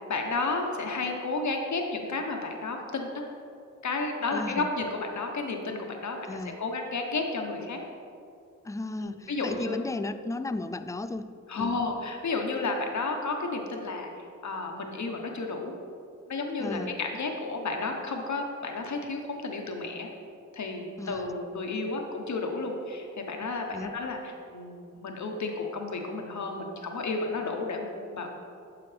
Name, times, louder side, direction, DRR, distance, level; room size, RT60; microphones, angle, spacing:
voice 1, 0.1-3.3 3.8-7.8 9.0-9.8 11.5-14.1 14.4-15.7 16.3-20.1 20.5-28.3, left 3 dB, 60° left, 2 dB, 1.2 m, -32 dB
voice 2, 4.3-4.7 6.2-6.6 8.6-11.3 11.6-11.8 16.6-16.9 21.0-21.2 23.7-24.0, left 2 dB, 10° left, 12 dB, 0.3 m, -34 dB
9.9 x 6.8 x 3.4 m, 2.5 s
cardioid pair, 65°, 33 cm